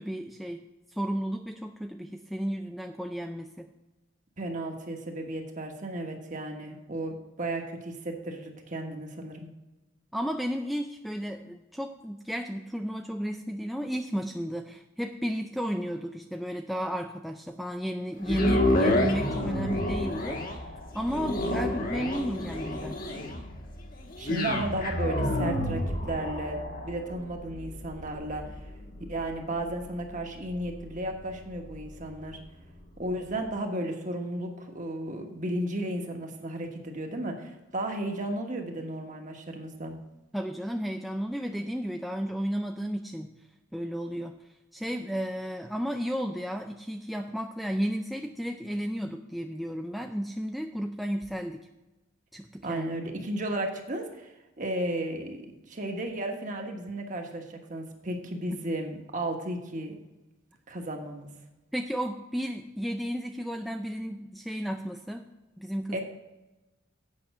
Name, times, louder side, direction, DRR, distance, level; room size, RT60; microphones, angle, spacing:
voice 1, 0.0-3.7 10.1-23.0 40.3-43.3 43.7-44.4 44.7-51.6 52.3-53.0 61.7-65.3 65.6-66.0, equal, ahead, 3 dB, 0.3 m, -33 dB
voice 2, 4.4-9.5 24.2-28.6 29.1-32.4 33.0-40.0 52.6-54.3 54.6-60.0 60.7-61.3 65.9-66.0, right 1 dB, 40° right, 3 dB, 1.3 m, -34 dB
sound 1, 18.2-32.4 33.0-33.1, left 1 dB, 45° left, 1.3 m, -30 dB
8.6 x 5.9 x 6.4 m, 1.0 s
head